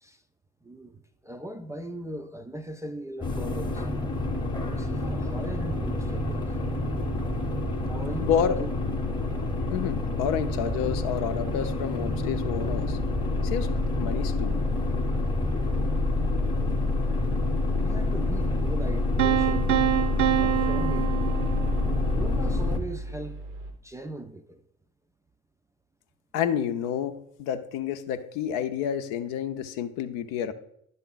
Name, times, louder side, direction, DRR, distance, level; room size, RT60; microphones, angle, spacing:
voice 1, 0.6-3.9 4.6-6.5 7.8-8.7 9.3-9.5 17.1-17.5 17.8-19.7 20.4-21.1 22.1-23.4 23.8-24.6, right 1 dB, 10° right, 0.4 m, -39 dB
sound 1, 3.2-22.8, left 2 dB, 10° left, 0.9 m, -28 dB
sound 2, 5.7-23.7, right 1 dB, 85° right, 0.9 m, -38 dB
voice 2, 8.2-8.6 9.7-13.0 13.4-13.7 14.0-14.6 26.3-27.1 27.4-30.5, left 8 dB, 65° left, 0.7 m, -29 dB
Piano, 19.2-22.1, right 16 dB, 55° right, 0.6 m, -26 dB
10.5 x 3.8 x 3.9 m
figure-of-eight pair, 55°, 36 cm